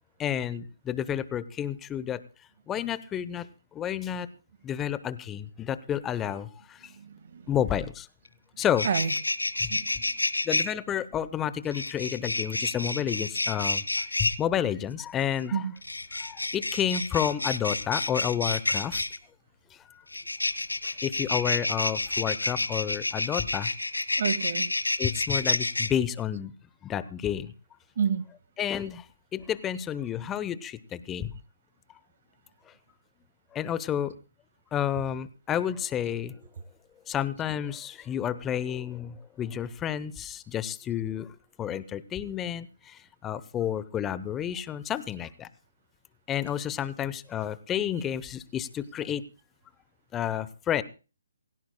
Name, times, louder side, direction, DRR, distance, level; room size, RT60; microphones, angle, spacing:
voice 1, 0.2-2.2 2.7-4.3 4.6-6.9 7.5-8.1 8.6-8.9 9.6-9.7 10.5-13.8 14.2-15.6 16.2-19.0 20.8-23.7 25.0-26.5 26.8-27.5 28.6-29.1 29.3-31.3 33.5-34.1 34.7-36.4 37.1-45.5 46.3-49.2 50.1-50.8, left 9 dB, 15° left, 0.8 m, -30 dB
voice 2, 6.9-7.5 8.8-9.1 9.6-9.9 15.5-15.7 24.2-24.7 28.0-28.2, right 7 dB, 50° right, 1.7 m, -29 dB
sound 1, 8.3-8.4 8.6-10.7 11.7-14.4 15.8-19.2 20.1-25.9, left 2 dB, 85° left, 1.5 m, -29 dB
27.5 x 16.5 x 2.2 m
figure-of-eight pair, 140°, 0 cm